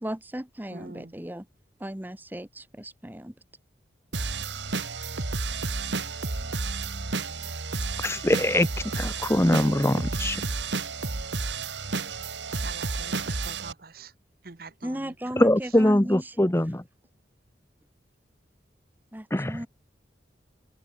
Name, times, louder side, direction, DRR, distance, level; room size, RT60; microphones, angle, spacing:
voice 1, 0.0-1.4 1.8-3.3 14.8-16.5 19.1-19.7, right 1 dB, 10° right, 1.0 m, -36 dB
voice 2, 0.7-1.1 5.0-5.1 12.6-14.1 14.4-15.1, right 3 dB, 55° right, 1.1 m, -44 dB
sound 1, 4.1-13.7, right 3 dB, 80° right, 1.9 m, -31 dB
voice 3, 8.0-8.7 8.9-10.4 15.4-16.8 19.3-19.6, left 1 dB, 15° left, 0.9 m, -22 dB
head